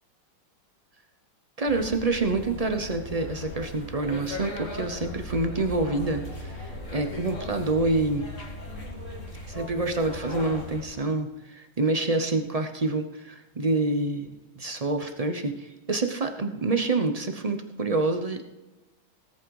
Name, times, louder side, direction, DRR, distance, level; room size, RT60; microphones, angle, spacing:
voice 1, 1.6-8.2 9.4-14.3 14.6-18.4, right 2 dB, 65° right, 6 dB, 0.3 m, -27 dB
sound 1, 1.7-10.8, left 1 dB, 35° left, 2.6 m, -38 dB
18.0 x 8.7 x 4.8 m, 1.1 s
omnidirectional pair, 2.2 m